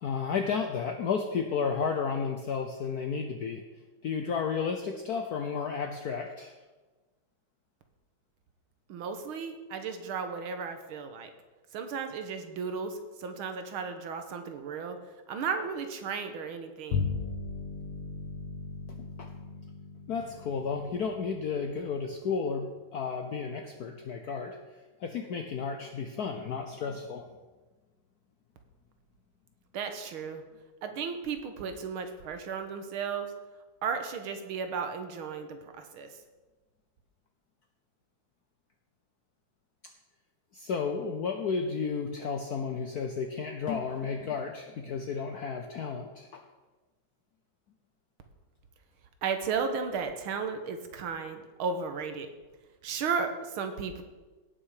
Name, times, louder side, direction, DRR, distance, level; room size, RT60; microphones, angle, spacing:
voice 1, 0.0-3.6 4.0-6.5 19.2-19.3 20.1-24.6 25.0-27.2 40.5-46.4, left 5 dB, 65° left, 5 dB, 1.0 m, -32 dB
voice 2, 8.9-11.3 11.7-15.0 15.3-17.1 29.7-30.4 30.8-33.3 33.8-36.1 49.2-52.3 52.8-54.0, right 5 dB, 80° right, 7 dB, 1.9 m, -34 dB
Bowed string instrument, 16.9-22.6, left 5 dB, 90° left, 1.9 m, -37 dB
17.0 x 6.2 x 4.8 m, 1.2 s
omnidirectional pair, 2.3 m